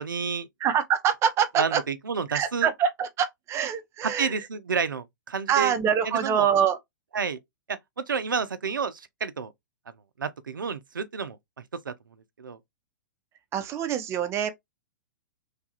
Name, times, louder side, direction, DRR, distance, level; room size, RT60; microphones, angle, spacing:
voice 1, 0.0-0.5 1.6-2.7 4.0-5.7 6.0-6.5 7.1-7.4 7.7-9.5 10.2-11.4 11.8-11.9 12.4-12.6, right 5 dB, 85° right, 0.4 m, -30 dB
voice 2, 0.6-1.8 2.3-4.4 5.5-6.8 13.5-14.5, right 8 dB, 25° right, 0.6 m, -25 dB
3.2 x 2.4 x 2.8 m
hypercardioid pair, 110°, 11 cm